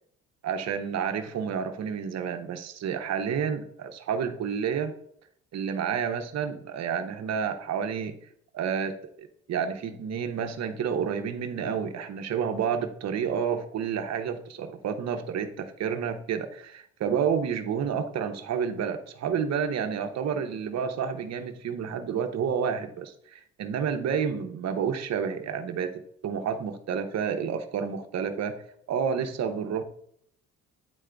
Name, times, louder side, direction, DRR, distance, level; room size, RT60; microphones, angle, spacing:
voice 1, 0.4-4.9 5.5-8.1 8.5-28.5 28.9-29.8, right 7 dB, 60° right, 7 dB, 0.9 m, -30 dB
9.3 x 3.7 x 3.5 m, 0.69 s
supercardioid pair, 75°, 31 cm